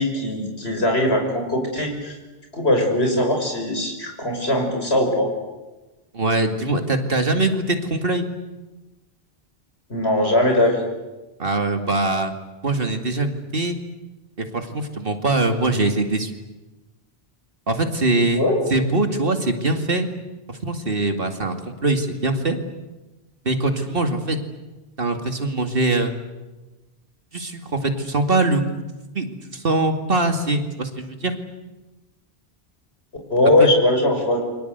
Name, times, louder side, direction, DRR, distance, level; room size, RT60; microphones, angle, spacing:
voice 1, 0.0-2.2 2.5-5.3 9.9-10.8 18.4-18.6 33.3-34.4, left 1 dB, 75° left, 2 dB, 6.2 m, -20 dB
voice 2, 6.1-8.3 11.4-12.3 12.6-13.8 14.4-16.4 17.7-18.4 18.7-20.1 20.5-22.6 23.5-24.4 25.0-26.1 27.3-28.8 29.1-31.3, right 2 dB, 60° right, 6 dB, 2.6 m, -22 dB
29.0 x 24.5 x 8.2 m, 1.1 s
omnidirectional pair, 1.1 m